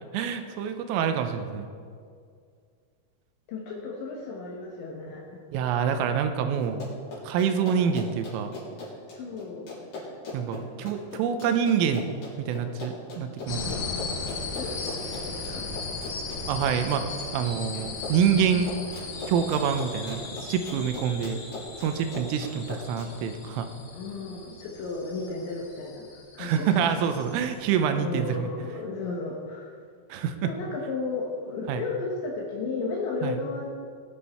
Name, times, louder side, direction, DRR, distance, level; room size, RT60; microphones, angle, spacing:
voice 1, 0.1-1.7 5.5-6.8 7.2-8.5 10.3-12.1 12.4-13.7 16.5-17.0 17.3-18.7 19.3-21.4 21.8-23.7 26.4-28.5 30.1-30.5 31.7-31.8 33.2-33.4, right 7 dB, 80° right, 8 dB, 3.3 m, -26 dB
voice 2, 3.5-5.4 9.1-9.7 14.5-15.6 23.9-27.0 28.0-29.8 30.4-33.7, left 3 dB, 70° left, -2 dB, 3.2 m, -34 dB
Run, 6.6-23.1, left 2 dB, 50° left, 4.9 m, -39 dB
sound 1, 13.5-27.7, left 4 dB, 90° left, 4.7 m, -37 dB
21.0 x 7.5 x 4.3 m, 2.2 s
omnidirectional pair, 5.9 m